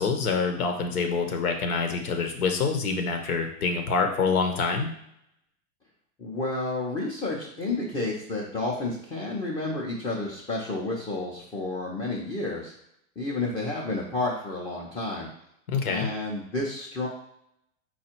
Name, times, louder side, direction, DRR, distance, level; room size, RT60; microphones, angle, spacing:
voice 1, 0.0-4.9 15.7-16.1, left 4 dB, 85° left, 4 dB, 1.0 m, -26 dB
voice 2, 6.2-12.7 13.2-15.3 15.9-17.1, left 2 dB, 15° left, -4 dB, 0.5 m, -30 dB
4.5 x 2.4 x 4.4 m, 0.75 s
hypercardioid pair, 135°, 42 cm